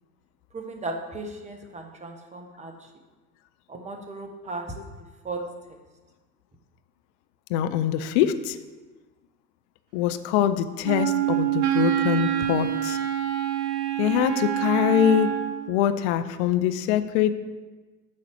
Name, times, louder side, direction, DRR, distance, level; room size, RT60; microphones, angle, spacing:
voice 1, 0.5-2.9 3.7-4.7 5.2-5.4 5.7-5.8, right 2 dB, 15° right, 3 dB, 1.2 m, -36 dB
voice 2, 7.5-8.6 9.9-13.0 14.0-15.4 15.7-17.3, left 10 dB, 45° left, 11 dB, 0.6 m, -23 dB
Wind instrument woodwind instrument, 10.8-15.7, right 11 dB, 50° right, 1.1 m, -26 dB
8.5 x 4.1 x 6.3 m, 1.3 s
figure-of-eight pair, 75°, 48 cm